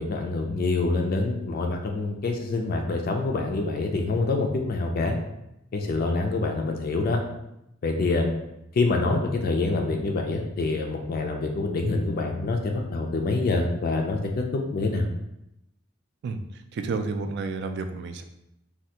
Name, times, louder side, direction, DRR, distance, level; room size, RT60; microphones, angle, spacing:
voice 1, 0.0-5.2 5.7-7.2 7.8-8.3 8.7-15.1, left 3 dB, 50° left, 2 dB, 0.3 m, -26 dB
voice 2, 16.7-18.2, right 4 dB, 55° right, 7 dB, 0.3 m, -30 dB
3.2 x 2.3 x 2.8 m, 0.85 s
head